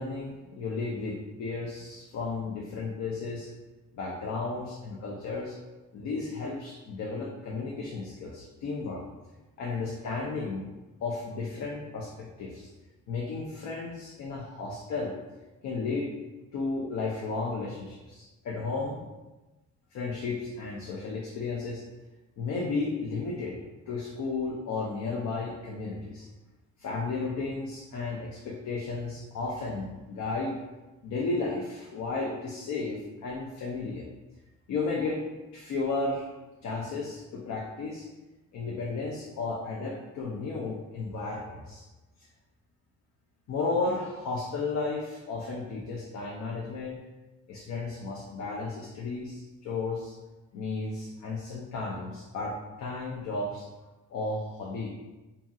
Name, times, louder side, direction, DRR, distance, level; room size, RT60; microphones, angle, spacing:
voice 1, 0.0-3.5 3.9-5.6 5.9-9.0 9.6-10.7 11.0-12.7 13.1-15.1 15.6-16.1 16.5-19.1 19.9-21.8 22.4-23.6 23.9-26.3 26.8-30.5 31.0-34.1 34.7-35.2 35.5-36.3 36.6-38.1 38.5-41.8 43.5-47.0 47.5-50.1 50.5-53.7 54.1-54.9, left 3 dB, 70° left, -2 dB, 0.5 m, -33 dB
2.7 x 2.7 x 2.3 m, 1.1 s
cardioid pair, 90°, 30 cm